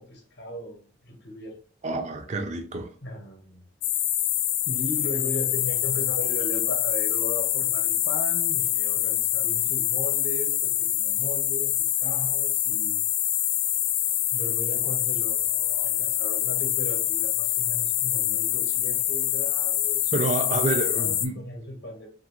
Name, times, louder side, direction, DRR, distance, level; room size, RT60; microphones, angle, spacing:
voice 1, 0.0-1.6 3.0-3.6 4.7-13.0 14.3-22.1, equal, 60° left, 0.7 m, -37 dB
voice 2, 1.8-2.9 20.1-21.4, right 2 dB, 40° right, 0.4 m, -28 dB
sound 1, 3.8-21.3, left 12 dB, 80° left, 0.3 m, -25 dB
2.6 x 2.5 x 2.9 m
head